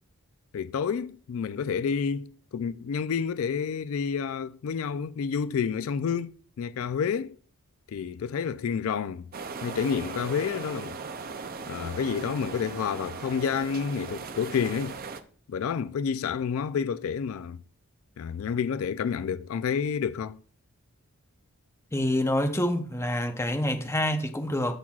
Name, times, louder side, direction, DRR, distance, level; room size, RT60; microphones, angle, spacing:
voice 1, 0.5-7.4 7.9-9.3 9.6-11.0 11.7-15.0 15.5-17.6 18.2-20.4, left 6 dB, 65° left, 0.3 m, -29 dB
sound 1, 9.3-15.2, right 4 dB, 40° right, 0.6 m, -38 dB
voice 2, 21.9-24.7, left 1 dB, 10° left, 0.7 m, -27 dB
13.0 x 6.0 x 2.4 m
head